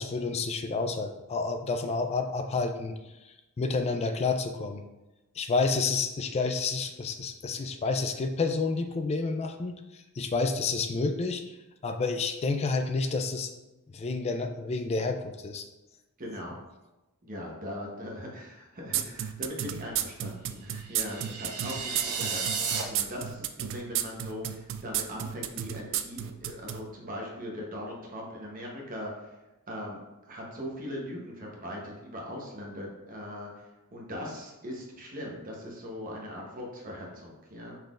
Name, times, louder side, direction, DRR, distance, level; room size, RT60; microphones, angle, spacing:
voice 1, 0.0-3.0 3.2-4.8 5.4-11.6 11.8-13.5 13.9-15.6, left 4 dB, 30° left, 6 dB, 0.3 m, -29 dB
voice 2, 16.2-16.6 17.2-29.4 29.7-30.0 30.3-33.5 33.9-37.8, equal, 40° right, -1 dB, 0.9 m, -40 dB
sound 1, 18.9-26.8, right 11 dB, 60° right, 0.3 m, -31 dB
sound 2, 20.8-22.8, right 5 dB, 80° right, 0.7 m, -33 dB
5.4 x 3.8 x 2.4 m, 1.0 s
head